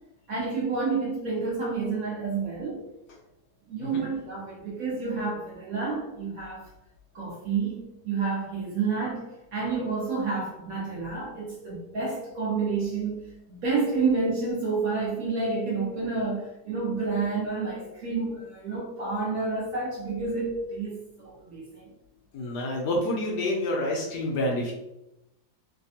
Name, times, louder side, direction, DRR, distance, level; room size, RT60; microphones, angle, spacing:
voice 1, 0.3-2.8 3.7-6.7 7.1-21.9, right 4 dB, 65° right, -5 dB, 0.9 m, -29 dB
voice 2, 22.3-24.7, left 1 dB, 70° left, -1 dB, 1.0 m, -28 dB
3.3 x 2.2 x 2.7 m, 0.89 s
omnidirectional pair, 2.0 m